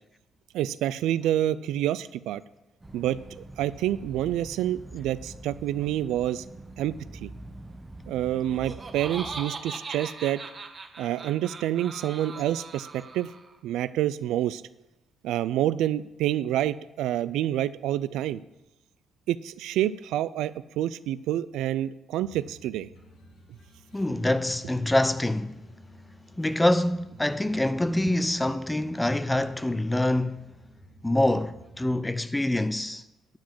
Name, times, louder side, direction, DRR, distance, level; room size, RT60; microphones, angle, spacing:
voice 1, 0.5-2.4 2.9-3.2 3.6-6.4 6.8-7.3 8.1-10.4 11.0-13.3 13.6-14.6 15.2-18.4 19.3-22.9, right 12 dB, 90° right, 0.3 m, -28 dB
sound 1, 2.8-9.4, right 2 dB, 15° right, 1.0 m, -45 dB
Laughter, 8.3-13.6, right 4 dB, 35° right, 1.2 m, -40 dB
sound 2, 22.2-32.0, equal, 75° left, 3.8 m, -53 dB
voice 2, 23.9-25.6 26.4-30.5 31.0-33.0, left 1 dB, 10° left, 0.5 m, -25 dB
10.5 x 4.9 x 7.6 m
cardioid pair, 90°, 0 cm